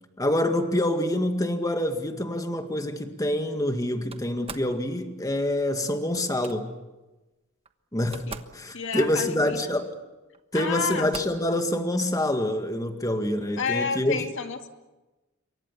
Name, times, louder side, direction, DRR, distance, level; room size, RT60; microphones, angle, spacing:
voice 1, 0.2-6.7 7.9-8.2 8.5-9.9 10.5-14.2, left 1 dB, 15° left, 6 dB, 2.0 m, -26 dB
Slam, 4.1-4.8 6.1-6.6 7.6-7.7 8.0-8.6 8.9-9.6 10.3-10.4 10.9-11.5, right 4 dB, 30° right, 1.2 m, -42 dB
voice 2, 8.7-9.7 10.5-11.1 13.6-14.7, left 5 dB, 60° left, 6 dB, 2.3 m, -30 dB
27.0 x 23.5 x 7.1 m, 1.1 s
head